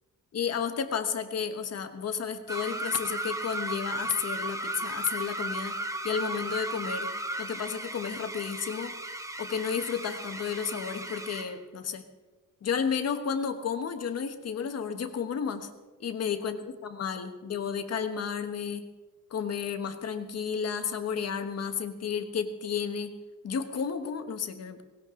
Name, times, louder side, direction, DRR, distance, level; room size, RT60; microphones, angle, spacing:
voice 1, 0.3-5.8 6.0-7.1 7.4-8.9 9.4-12.0 12.6-15.7 16.0-18.9 19.3-23.2 23.4-24.8, left 7 dB, 45° left, 7 dB, 1.3 m, -32 dB
sound 1, 2.5-11.6, right 1 dB, 10° right, 0.8 m, -35 dB
18.0 x 17.5 x 3.8 m, 1.2 s
wide cardioid pair, 165°, 33 cm